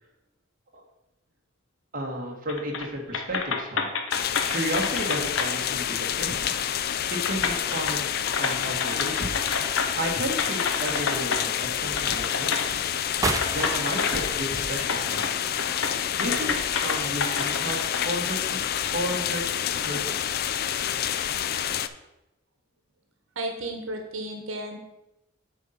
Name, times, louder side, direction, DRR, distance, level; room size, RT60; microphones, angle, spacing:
voice 1, 1.9-3.8 4.5-6.6 7.3-8.0 8.4-9.4 10.0-12.8 13.5-15.3 16.2-16.5 16.8-18.6 18.9-19.4 19.8-20.3, right 1 dB, 45° right, 0 dB, 1.4 m, -32 dB
sound 1, 2.5-2.9 3.1-5.5 6.6-6.7 7.2-10.0 10.4-11.4 12.0-12.7 13.2-14.5 14.9-15.3 15.6-18.1, left 5 dB, 80° left, 0.9 m, -29 dB
sound 2, 4.1-21.9, left 10 dB, 50° left, 0.4 m, -28 dB
sound 3, 12.2-17.5, right 3 dB, 15° right, 0.5 m, -35 dB
voice 2, 23.4-24.8, right 1 dB, 85° right, 4 dB, 1.1 m, -33 dB
8.3 x 3.9 x 5.6 m, 0.92 s
head